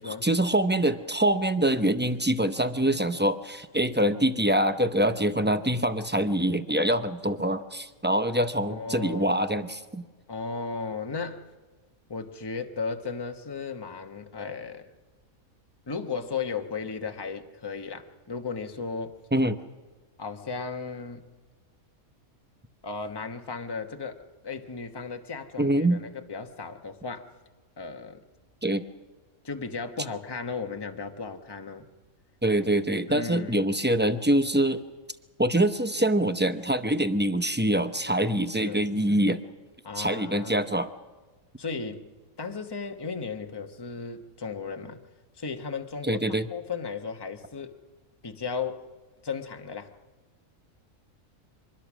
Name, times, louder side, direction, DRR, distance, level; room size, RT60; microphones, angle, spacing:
voice 1, 0.0-10.0 19.3-19.6 25.6-26.0 28.6-28.8 32.4-34.8 35.4-39.4 40.0-40.9 46.0-46.5, right 1 dB, 15° right, 10 dB, 0.4 m, -25 dB
voice 2, 8.6-9.4 10.3-11.4 12.1-14.9 15.9-19.2 20.2-21.3 22.8-27.3 27.8-28.2 29.4-31.9 33.1-33.7 38.6-38.9 39.8-40.7 41.6-45.0 45.3-46.2 46.5-47.7 48.2-48.9 49.2-49.9, left 5 dB, 20° left, 5 dB, 1.1 m, -35 dB
25.0 x 21.0 x 6.2 m, 1.3 s
omnidirectional pair, 1.5 m